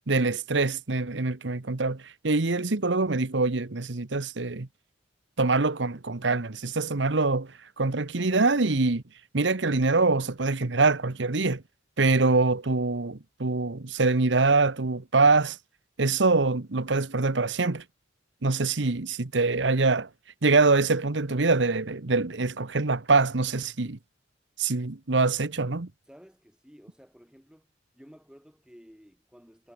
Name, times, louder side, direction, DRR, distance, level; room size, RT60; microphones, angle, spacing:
voice 1, 0.1-4.7 5.4-9.0 9.3-11.6 12.0-15.6 16.0-17.8 18.4-20.1 20.4-24.0 24.6-25.9, right 3 dB, 70° right, 1.1 m, -24 dB
voice 2, 26.1-29.7, equal, 5° right, 6.6 m, -53 dB
head